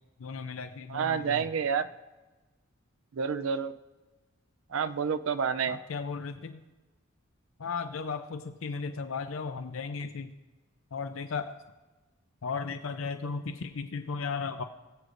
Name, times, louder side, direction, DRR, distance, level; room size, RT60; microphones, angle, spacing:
voice 1, 0.2-1.4 5.7-6.6 7.6-10.3 10.9-11.5 12.4-14.6, left 5 dB, 75° left, 9 dB, 0.5 m, -35 dB
voice 2, 0.9-1.9 3.1-3.7 4.7-5.8, right 6 dB, 70° right, 11 dB, 0.4 m, -29 dB
20.5 x 8.1 x 2.6 m, 1.2 s
head